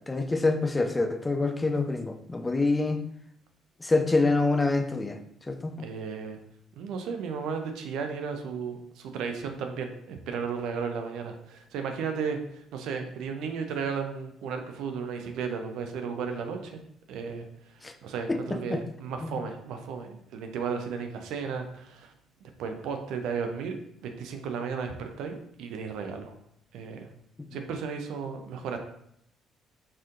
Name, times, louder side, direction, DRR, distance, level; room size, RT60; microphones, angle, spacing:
voice 1, 0.1-3.0 3.8-5.2 5.5-5.8 17.8-17.9 18.3-18.8 19.2-19.3, left 3 dB, 20° left, 6 dB, 0.5 m, -26 dB
voice 2, 5.8-6.4 6.7-16.8 17.1-22.1 22.4-23.8 24.0-26.3 26.7-27.1 27.5-28.8, right 6 dB, 65° right, 5 dB, 0.5 m, -34 dB
4.3 x 3.6 x 2.5 m, 0.71 s
hypercardioid pair, 50°, 0 cm